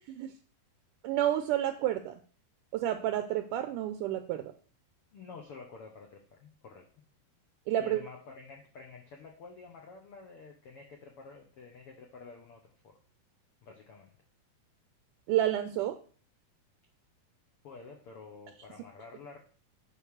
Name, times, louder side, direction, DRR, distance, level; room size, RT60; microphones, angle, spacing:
voice 1, 1.0-2.2 2.7-4.4 7.7-8.0 15.3-16.0, right 12 dB, 80° right, 8 dB, 1.9 m, -30 dB
voice 2, 5.1-6.9 7.8-13.0 13.6-14.1 17.6-19.4, left 4 dB, 85° left, 1 dB, 1.2 m, -49 dB
9.0 x 4.0 x 6.3 m, 0.42 s
omnidirectional pair, 4.3 m